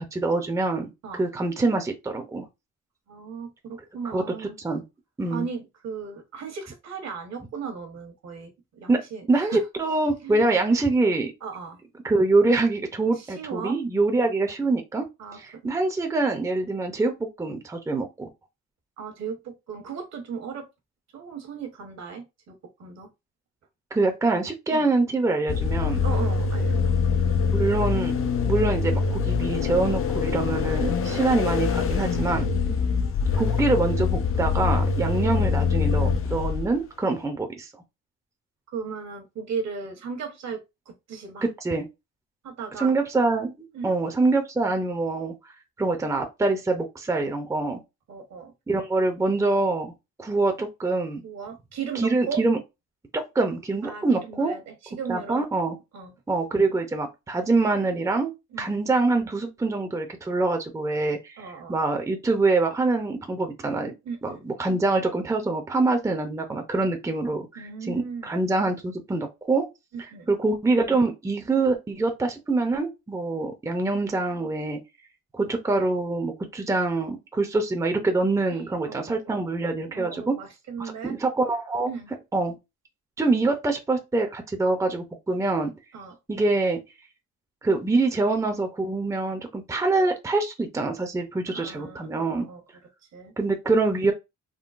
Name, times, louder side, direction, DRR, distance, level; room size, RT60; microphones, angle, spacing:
voice 1, 0.0-2.5 4.1-4.8 5.2-5.5 8.9-9.0 9.3-11.3 12.0-15.1 15.3-18.3 23.9-26.0 27.5-28.1 28.4-32.5 33.3-37.7 41.4-41.9 42.8-43.5 43.8-45.3 45.8-47.8 48.7-49.9 50.2-51.2 51.9-52.6 53.1-54.6 55.1-55.8 56.3-58.3 58.6-63.9 64.2-69.6 70.3-74.8 75.3-80.4 80.8-81.9 82.3-82.6 83.2-85.7 86.3-86.8 87.6-92.5 93.4-94.1, right 3 dB, 10° right, 0.6 m, -25 dB
voice 2, 3.1-4.6 5.3-9.6 10.2-10.4 11.4-11.8 13.0-13.8 15.2-15.7 19.0-20.7 21.1-23.1 24.7-24.9 26.0-26.9 32.7-32.8 35.1-35.3 38.7-41.4 42.4-42.9 43.7-43.9 48.1-48.5 51.2-52.4 53.8-55.5 55.9-56.1 58.5-58.7 61.4-61.8 64.0-64.4 67.6-68.3 69.9-70.3 78.5-79.5 79.8-81.2 81.9-82.1 85.9-86.2 91.5-92.6 93.1-93.3, right 6 dB, 60° right, 1.1 m, -36 dB
sound 1, 25.5-36.7, left 5 dB, 45° left, 0.5 m, -24 dB
3.8 x 2.0 x 2.4 m
cardioid pair, 90°, 30 cm